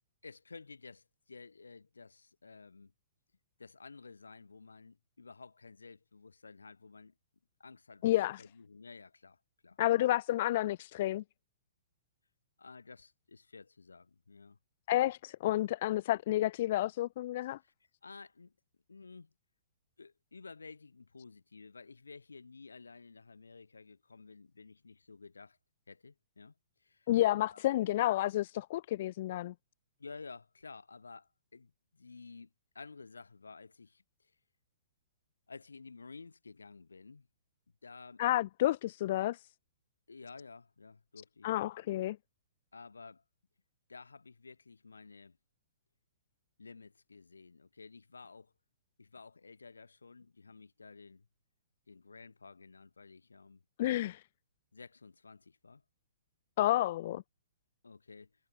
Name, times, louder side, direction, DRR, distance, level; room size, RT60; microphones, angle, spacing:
voice 1, 0.2-2.9 3.6-7.1 7.6-9.8 12.6-14.6 17.6-17.7 18.0-18.5 18.9-19.3 20.0-25.6 25.9-26.5 26.8-27.1 27.4-27.6 30.0-34.4 35.5-37.3 37.8-38.2 40.1-41.5 42.7-43.2 43.9-45.4 46.6-48.5 49.0-51.3 51.9-53.6 54.7-55.8 57.1-57.2 57.8-58.3, left 4 dB, 75° left, 5.2 m, -53 dB
voice 2, 8.0-8.4 9.8-11.2 14.9-17.6 27.1-29.5 38.2-39.5 41.4-42.2 53.8-54.2 56.6-57.2, left 14 dB, 45° left, 0.5 m, -30 dB
figure-of-eight pair, 115°, 0 cm